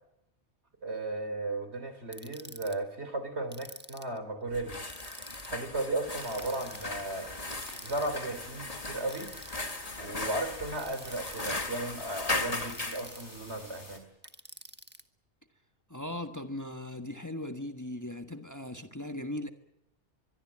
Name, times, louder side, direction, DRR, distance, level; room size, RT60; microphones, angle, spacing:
voice 1, 0.8-4.8 5.4-7.3 7.8-9.3 10.0-14.1, right 2 dB, 70° right, 3.7 m, -35 dB
Ratchet pawl, 2.1-2.7 3.5-4.2 4.9-5.5 6.2-6.9 7.6-8.1 9.1-9.7 10.8-11.5 12.5-13.3 14.2-15.0, right 1 dB, 10° right, 1.4 m, -48 dB
sound 1, 4.5-13.1, left 2 dB, 35° left, 1.9 m, -38 dB
sound 2, 6.2-14.0, left 1 dB, 80° left, 5.9 m, -49 dB
voice 2, 15.9-19.5, left 1 dB, 15° left, 1.4 m, -38 dB
24.5 x 22.5 x 8.7 m
omnidirectional pair, 1.2 m